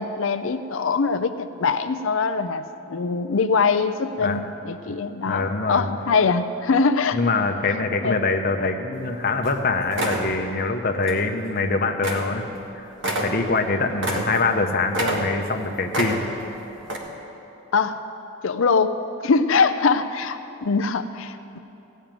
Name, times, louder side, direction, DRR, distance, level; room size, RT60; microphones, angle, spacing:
voice 1, 0.0-7.2 8.0-8.2 17.7-18.0 18.4-19.0 19.2-21.6, left 4 dB, 65° left, 9 dB, 0.5 m, -23 dB
voice 2, 5.3-5.9 7.1-12.5 12.7-12.9 13.2-16.2, left 3 dB, 45° left, 5 dB, 0.9 m, -24 dB
sound 1, 9.0-9.1 9.4-9.6 9.9-10.3 11.0-11.2 11.6-11.7 12.0-12.3 12.6-12.7 13.0-14.6 14.9-15.6 15.9-16.5 16.8-17.0, right 1 dB, 55° right, 1.7 m, -27 dB
16.5 x 6.5 x 9.0 m, 2.9 s
head